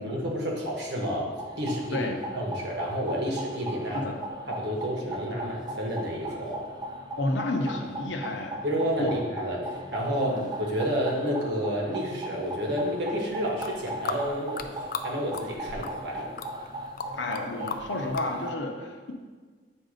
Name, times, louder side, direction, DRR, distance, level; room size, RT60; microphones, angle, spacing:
voice 1, 0.0-2.1 2.3-4.0 4.5-6.6 8.6-16.3, equal, 70° right, -2 dB, 1.3 m, -30 dB
sound 1, 1.2-18.6, right 1 dB, 25° right, 0.4 m, -38 dB
voice 2, 7.2-8.6 9.0-9.2 10.2-10.5 17.1-19.1, left 2 dB, 85° left, 3 dB, 0.8 m, -31 dB
sound 2, 13.5-15.1 15.3-16.1 16.4-17.4 17.7-18.3, left 6 dB, 55° left, 0.4 m, -35 dB
8.0 x 2.7 x 5.1 m, 1.5 s
head